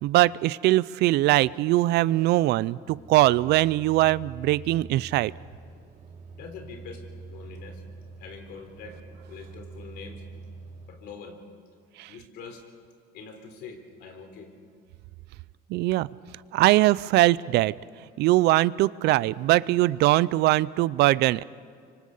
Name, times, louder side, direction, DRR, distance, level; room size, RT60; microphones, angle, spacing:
voice 1, 0.0-5.3 12.0-12.1 15.7-16.1 16.5-17.7 18.2-21.4, right 17 dB, 80° right, 21 dB, 0.5 m, -21 dB
sound 1, 2.9-10.9, right 4 dB, 55° right, 4.0 m, -45 dB
voice 2, 6.3-7.8 8.2-9.0 9.3-10.2 10.9-11.4 12.1-12.6 13.1-14.5, left 5 dB, 80° left, 5 dB, 3.7 m, -43 dB
26.0 x 24.5 x 5.5 m, 2.2 s
cardioid pair, 110°, 17 cm